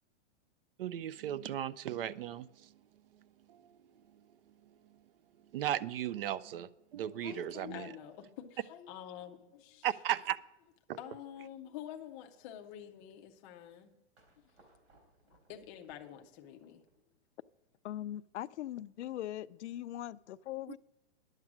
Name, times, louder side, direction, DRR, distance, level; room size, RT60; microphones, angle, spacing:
voice 1, 0.8-2.7 3.1-3.2 3.5-3.8 4.6-4.7 5.5-7.9 9.8-10.4 10.9-11.0, right 11 dB, 55° right, 0.5 m, -36 dB
voice 2, 7.2-9.9 11.0-13.9 15.2-16.8, left 10 dB, 15° left, 0.4 m, -48 dB
sound 1, 14.2-17.2, right 2 dB, 85° right, 3.5 m, -67 dB
voice 3, 17.8-20.8, left 13 dB, 90° left, 0.5 m, -40 dB
11.0 x 7.4 x 6.0 m
hypercardioid pair, 160°, 34 cm